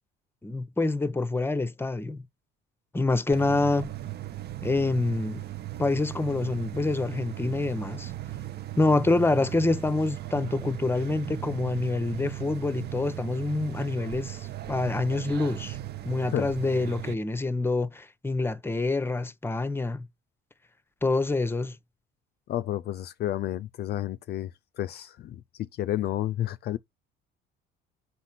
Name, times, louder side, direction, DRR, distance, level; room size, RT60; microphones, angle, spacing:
voice 1, 0.4-2.2 2.9-3.9 4.6-5.4 5.8-8.1 8.8-15.8 16.0-20.1 21.0-21.8, left 2 dB, 10° left, 0.8 m, -26 dB
sound 1, 3.3-17.1, right 14 dB, 50° right, 0.7 m, -37 dB
voice 2, 22.5-24.5 24.8-26.8, left 13 dB, 55° left, 0.4 m, -31 dB
5.8 x 4.2 x 5.9 m
cardioid pair, 95°, 21 cm